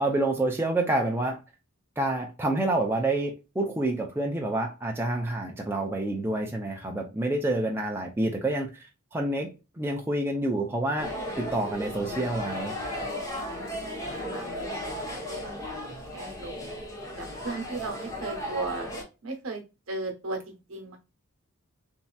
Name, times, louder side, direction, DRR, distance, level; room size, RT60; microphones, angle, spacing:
voice 1, 0.0-1.4 2.0-8.7 9.1-9.5 9.8-12.7, right 2 dB, 10° right, 0.4 m, -28 dB
sound 1, 11.0-19.0, equal, 15° left, 0.8 m, -35 dB
voice 2, 13.3-16.7 17.2-18.9 19.2-19.6 19.9-21.0, right 3 dB, 70° right, 0.9 m, -37 dB
3.1 x 2.7 x 2.2 m
head